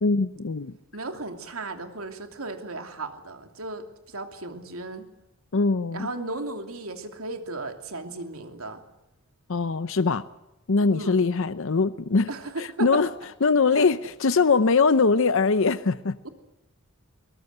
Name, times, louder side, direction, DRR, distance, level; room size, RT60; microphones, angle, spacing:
voice 1, 0.0-0.7 5.5-6.1 9.5-10.2 10.7-12.3 12.6-13.1 13.4-16.2, left 4 dB, 65° left, 14 dB, 0.7 m, -22 dB
voice 2, 0.9-5.1 5.9-8.8 10.9-11.2 12.3-13.0 13.7-13.9 16.2-16.3, right 2 dB, 90° right, 6 dB, 2.8 m, -35 dB
22.5 x 20.0 x 7.9 m, 0.97 s
head